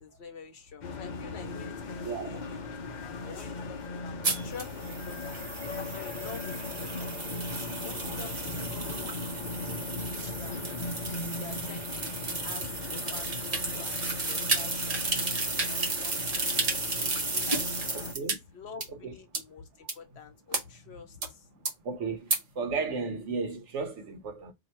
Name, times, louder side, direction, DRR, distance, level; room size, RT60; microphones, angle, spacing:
voice 1, 0.0-2.7 3.2-5.5 5.7-7.2 7.8-9.7 10.3-14.0 14.3-15.1 15.4-16.5 17.2-17.7 18.1-21.5, left 6 dB, 65° left, 1.0 m, -48 dB
sound 1, 0.8-18.1, left 3 dB, 45° left, 0.7 m, -38 dB
voice 2, 2.0-2.4 8.0-8.2 17.9-18.4 19.0-19.1 21.8-24.5, right 4 dB, 75° right, 1.2 m, -34 dB
sound 2, 4.2-18.3 18.8-18.9 19.3-19.4 19.9-20.0 20.5-20.6 21.2-21.3 21.6-21.7 22.3-22.4, right 3 dB, 35° right, 0.8 m, -33 dB
2.8 x 2.7 x 4.4 m
omnidirectional pair, 1.2 m